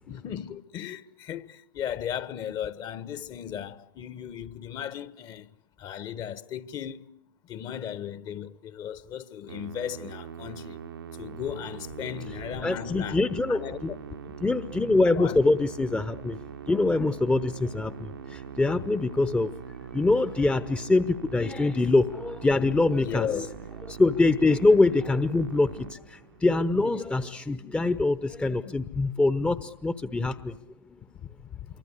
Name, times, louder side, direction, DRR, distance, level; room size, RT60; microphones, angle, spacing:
voice 1, 0.1-5.5 5.8-7.1 7.5-10.8 11.2-13.2 13.5-14.3 15.1-15.4 23.0-23.5 28.9-29.0 31.2-31.7, left 9 dB, 35° left, 1.4 m, -36 dB
Musical instrument, 9.5-26.6, right 6 dB, 75° right, 1.3 m, -42 dB
voice 2, 12.6-13.9 14.4-16.4 16.7-19.6 19.9-23.3 23.9-30.5, left 2 dB, 10° left, 1.0 m, -24 dB
27.5 x 24.5 x 8.2 m
figure-of-eight pair, 85°, 12 cm